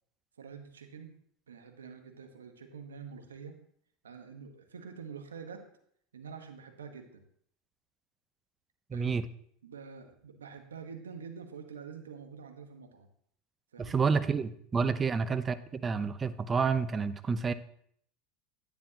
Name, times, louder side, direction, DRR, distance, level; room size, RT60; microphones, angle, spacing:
voice 1, 0.4-1.1 1.5-3.5 4.0-5.7 6.1-7.2 8.9-9.2 9.6-13.1 13.7-13.9, right 6 dB, 90° right, 5 dB, 1.1 m, -46 dB
voice 2, 8.9-9.3 13.8-17.5, right 5 dB, 25° right, 13 dB, 0.6 m, -29 dB
10.5 x 9.3 x 2.9 m, 0.66 s
hypercardioid pair, 90°, 0 cm